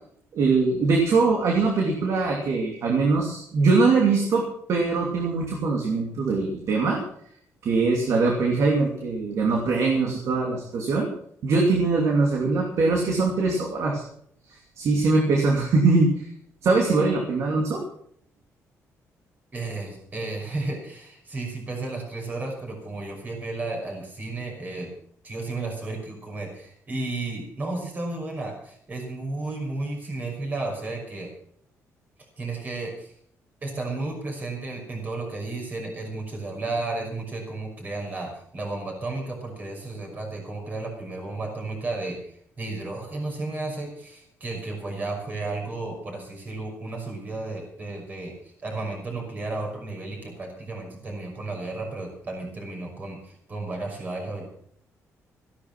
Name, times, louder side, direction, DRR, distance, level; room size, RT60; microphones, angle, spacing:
voice 1, 0.3-4.4 4.7-7.0 7.6-11.1 11.4-14.0 14.5-16.3 16.6-17.8, right 3 dB, 60° right, 0 dB, 2.7 m, -22 dB
voice 2, 19.5-24.9 25.2-31.3 32.4-33.1 33.6-48.3 48.6-54.5, right 2 dB, 30° right, 1 dB, 5.8 m, -33 dB
15.0 x 11.5 x 6.1 m, 0.67 s
cardioid pair, 155°, 6 cm